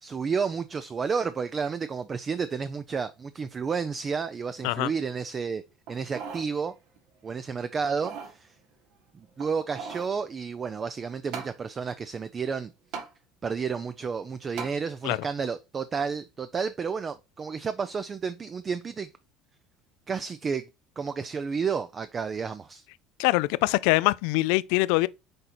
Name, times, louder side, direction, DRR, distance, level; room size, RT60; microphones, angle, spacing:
voice 1, 0.0-5.6 5.9-6.8 7.2-8.6 9.1-12.7 13.4-19.1 20.1-20.7 21.0-22.8, right 5 dB, 30° right, 0.5 m, -31 dB
sound 1, 5.9-6.5 7.0-7.1 7.8-8.4 9.4-10.1 11.3-11.6 12.9-13.1 14.6-14.8 15.4-15.5, right 6 dB, 70° right, 1.6 m, -38 dB
voice 2, 23.2-25.1, left 21 dB, 80° left, 0.4 m, -23 dB
6.5 x 4.4 x 4.2 m
supercardioid pair, 120°, 0 cm